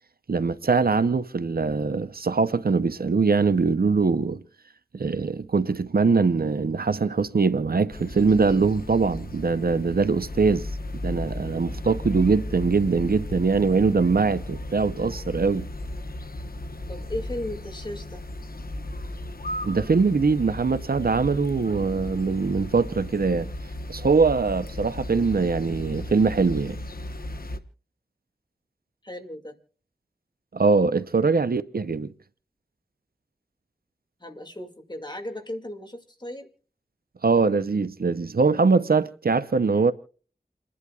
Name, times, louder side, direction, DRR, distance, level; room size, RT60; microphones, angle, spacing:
voice 1, 0.3-4.4 4.9-10.7 11.0-15.7 19.6-23.5 23.9-26.8 30.5-32.1 37.2-39.9, right 4 dB, 70° right, 0.7 m, -22 dB
sound 1, 7.9-27.6, left 1 dB, 70° left, 1.1 m, -35 dB
voice 2, 16.9-18.2 29.0-29.6 34.2-36.5, left 1 dB, 30° left, 2.2 m, -36 dB
29.0 x 11.0 x 2.4 m
wide cardioid pair, 60°, 16 cm